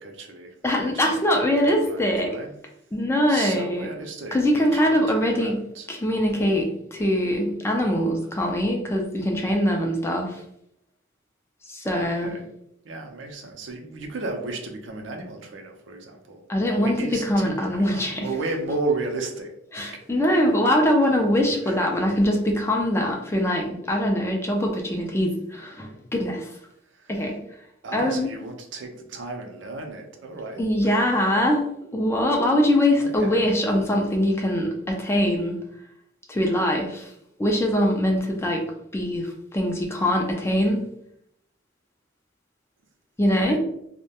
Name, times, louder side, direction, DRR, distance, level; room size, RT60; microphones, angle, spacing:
voice 1, 0.0-2.6 3.3-5.9 12.0-12.5 12.8-16.4 16.7-19.5 19.9-20.4 21.6-22.0 26.9-27.2 27.8-31.0 33.0-33.5 43.4-43.6, right 3 dB, 65° right, 2 dB, 0.5 m, -34 dB
voice 2, 0.6-2.3 2.9-3.9 4.3-5.6 5.9-10.4 11.7-12.3 16.5-17.0 17.2-18.3 19.7-26.5 27.1-27.4 27.9-28.3 30.6-31.7 31.9-35.6 36.3-37.1 37.4-38.6 38.9-40.8 43.2-43.6, left 1 dB, 15° left, 1 dB, 0.3 m, -23 dB
2.2 x 2.1 x 2.8 m, 0.74 s
head